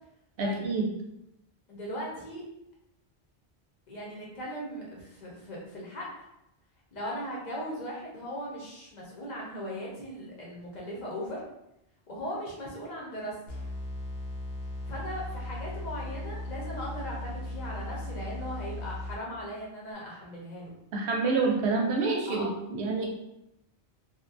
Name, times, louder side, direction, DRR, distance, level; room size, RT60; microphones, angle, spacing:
voice 1, 0.4-0.9 20.9-23.1, right 3 dB, 85° right, 1 dB, 0.9 m, -27 dB
voice 2, 1.7-2.4 3.9-6.1 6.9-11.4 12.1-13.3 14.8-20.7 22.3-22.5, equal, 45° left, -4 dB, 0.8 m, -38 dB
sound 1, 13.5-19.5, left 1 dB, 90° left, 0.9 m, -37 dB
2.8 x 2.2 x 2.4 m, 0.84 s
omnidirectional pair, 1.1 m